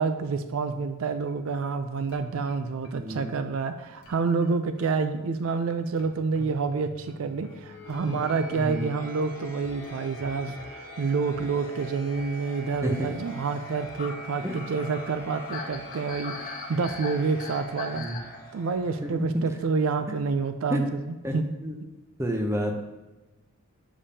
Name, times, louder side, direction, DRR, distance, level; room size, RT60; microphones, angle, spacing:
voice 1, 0.0-18.1 18.5-21.5 21.8-21.9, right 4 dB, 65° right, 9 dB, 0.4 m, -28 dB
sound 1, 1.1-19.2, equal, 70° left, 1.0 m, -45 dB
voice 2, 2.9-3.2 8.0-8.2 8.6-8.8 12.8-13.1 14.4-14.5 18.0-18.2 19.0-19.1 20.7-20.8 21.2-21.3 21.6-21.7 22.2-22.8, equal, 10° right, 3 dB, 0.6 m, -29 dB
sound 2, 8.9-19.0, left 4 dB, 40° left, 0.6 m, -42 dB
7.2 x 5.1 x 2.7 m, 1.1 s
head